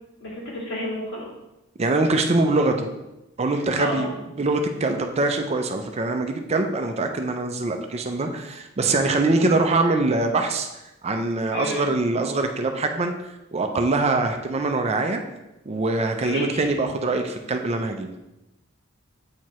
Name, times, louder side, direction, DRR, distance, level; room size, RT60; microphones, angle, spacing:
voice 1, 0.2-1.3 3.5-4.2 11.5-11.9 16.2-16.7, left 1 dB, 60° left, -4 dB, 2.1 m, -31 dB
voice 2, 1.8-2.9 3.4-13.2 13.5-15.2 15.7-18.1, right 2 dB, 30° right, 5 dB, 0.4 m, -23 dB
8.3 x 4.5 x 3.0 m, 0.96 s
head